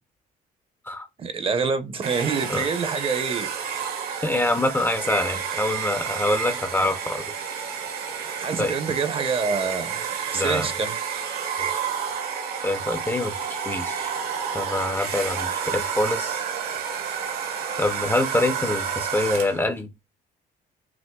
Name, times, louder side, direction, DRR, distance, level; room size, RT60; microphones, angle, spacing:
voice 1, 1.2-3.5 8.4-10.0 10.3-10.9, right 5 dB, 35° right, 0.7 m, -26 dB
Domestic sounds home sounds, 2.0-19.7, right 7 dB, 65° right, 1.0 m, -30 dB
voice 2, 4.2-7.2 8.6-8.7 10.3-10.7 11.6-11.7 12.6-14.1 14.5-16.4 17.8-19.9, left 2 dB, 15° left, 0.5 m, -25 dB
5.9 x 2.0 x 2.2 m
cardioid pair, 110°, 17 cm